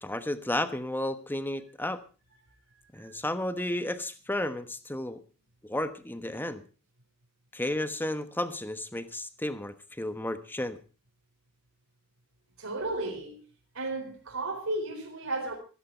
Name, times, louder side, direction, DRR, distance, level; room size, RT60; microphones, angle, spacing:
voice 1, 0.0-2.0 2.9-5.2 5.6-6.6 7.5-10.8, left 1 dB, 10° left, 1.2 m, -32 dB
voice 2, 12.6-13.4 13.7-15.5, right 2 dB, 80° right, 4.3 m, -34 dB
16.0 x 15.0 x 4.5 m
head